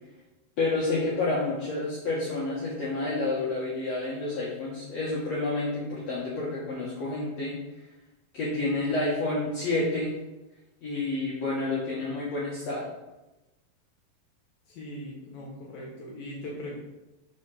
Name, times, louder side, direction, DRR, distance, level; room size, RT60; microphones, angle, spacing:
voice 1, 0.6-7.5 8.3-10.1 10.8-12.8, left 2 dB, 80° left, -6 dB, 1.5 m, -29 dB
voice 2, 14.7-16.8, left 1 dB, 65° left, -2 dB, 2.7 m, -40 dB
6.7 x 4.7 x 6.3 m, 1.0 s
omnidirectional pair, 5.1 m